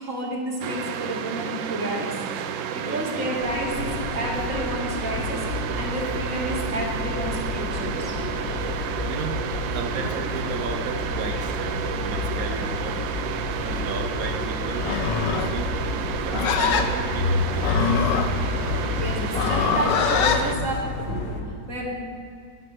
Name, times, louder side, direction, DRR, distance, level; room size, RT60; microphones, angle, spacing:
voice 1, 0.0-2.2 2.7-8.3 10.0-10.1 13.5-14.1 18.7-21.9, right 1 dB, 45° right, -3 dB, 2.0 m, -31 dB
sound 1, 0.6-20.6, right 8 dB, 80° right, 1.3 m, -31 dB
voice 2, 2.7-3.3 9.0-9.4 9.7-13.0 13.6-14.9 15.4-15.7 16.2-18.1, right 4 dB, 60° right, 5 dB, 1.0 m, -34 dB
sound 2, 3.4-21.4, left 3 dB, 45° left, 1.0 m, -30 dB
Livestock farm animals working animals, 14.8-20.4, left 6 dB, 75° left, 1.3 m, -25 dB
10.5 x 7.7 x 6.1 m, 2.2 s
omnidirectional pair, 2.1 m